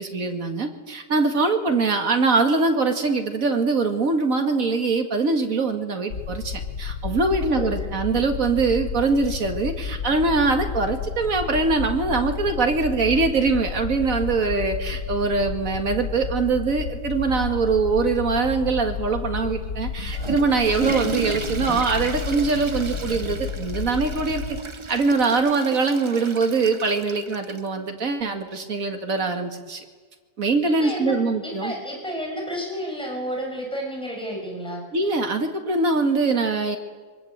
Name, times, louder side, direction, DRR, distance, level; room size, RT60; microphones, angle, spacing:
voice 1, 0.0-24.6 24.9-29.8 30.4-31.7 34.9-36.8, right 4 dB, 70° right, 5 dB, 2.5 m, -23 dB
sound 1, 6.1-24.6, left 6 dB, 90° left, 1.6 m, -32 dB
voice 2, 7.4-7.9 30.6-34.8, equal, 5° left, 0 dB, 6.2 m, -31 dB
Water / Toilet flush, 19.8-27.7, right 4 dB, 25° right, 0.8 m, -34 dB
24.0 x 24.0 x 8.1 m, 1.5 s
omnidirectional pair, 1.5 m